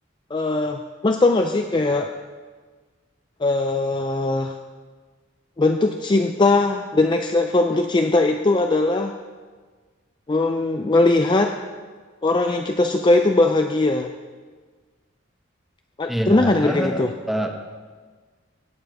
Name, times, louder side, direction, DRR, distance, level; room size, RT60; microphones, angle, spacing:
voice 1, 0.3-2.1 3.4-4.6 5.6-9.2 10.3-11.6 12.2-14.1 16.0-17.1, left 2 dB, 25° left, 5 dB, 0.4 m, -20 dB
voice 2, 16.1-17.5, equal, ahead, 3 dB, 0.9 m, -25 dB
17.0 x 7.2 x 4.8 m, 1.5 s
head